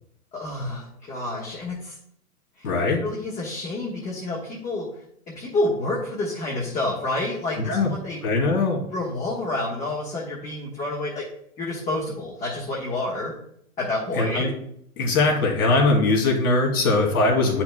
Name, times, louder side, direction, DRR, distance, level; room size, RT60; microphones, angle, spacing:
voice 1, 0.3-1.9 2.6-2.7 3.0-4.8 5.3-8.2 8.9-11.2 11.6-13.3 13.8-14.5, left 2 dB, 15° left, -5 dB, 1.2 m, -29 dB
voice 2, 2.6-3.0 7.7-7.9 8.2-8.8 14.1-14.5 15.0-17.6, left 3 dB, 70° left, 0 dB, 2.6 m, -21 dB
8.9 x 5.8 x 2.2 m, 0.70 s
hypercardioid pair, 130°, 46 cm